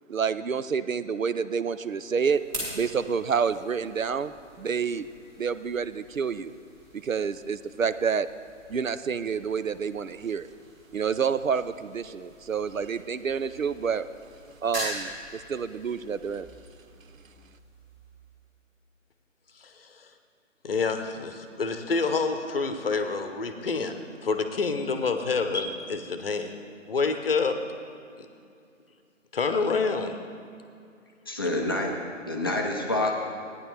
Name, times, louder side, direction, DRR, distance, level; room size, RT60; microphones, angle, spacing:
voice 1, 0.1-2.4 2.7-5.1 5.4-6.5 7.0-8.3 8.7-10.5 10.9-14.0 14.6-16.5, right 6 dB, 90° right, 13 dB, 0.6 m, -28 dB
sound 1, 1.7-18.6, equal, 20° right, 2.9 m, -44 dB
voice 2, 19.6-20.1 20.6-23.9 24.2-26.6 26.9-27.6 28.2-28.3 29.3-30.2, left 4 dB, 45° left, 7 dB, 0.9 m, -28 dB
voice 3, 31.3-31.9 32.3-33.1, left 2 dB, 20° left, 0 dB, 0.5 m, -27 dB
15.0 x 9.8 x 3.3 m, 2.5 s
figure-of-eight pair, 140°, 39 cm